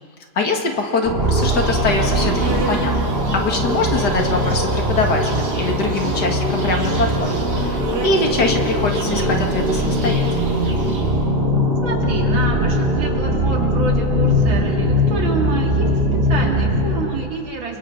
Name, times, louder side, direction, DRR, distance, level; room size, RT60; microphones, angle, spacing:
voice 1, 0.4-10.5, left 3 dB, 55° left, 3 dB, 2.2 m, -23 dB
sound 1, 1.0-17.2, equal, 30° right, 2.3 m, -20 dB
Insect, 1.4-11.3, right 4 dB, 60° right, 2.5 m, -34 dB
voice 2, 11.8-17.8, right 3 dB, 80° right, 0 dB, 3.3 m, -28 dB
30.0 x 23.0 x 3.9 m, 2.1 s
omnidirectional pair, 2.1 m